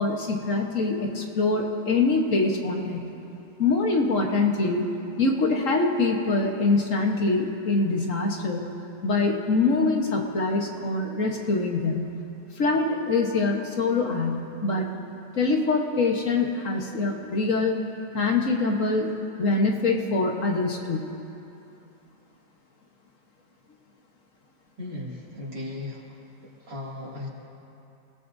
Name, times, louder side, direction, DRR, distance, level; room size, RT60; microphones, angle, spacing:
voice 1, 0.0-3.1 3.6-4.9 5.2-8.7 9.0-12.1 12.5-14.9 15.4-17.7 18.1-21.0, left 3 dB, 50° left, 1 dB, 1.5 m, -24 dB
voice 2, 24.8-26.0 26.7-27.3, left 2 dB, 85° right, -5 dB, 3.3 m, -36 dB
28.0 x 17.5 x 2.7 m, 2.8 s
omnidirectional pair, 1.8 m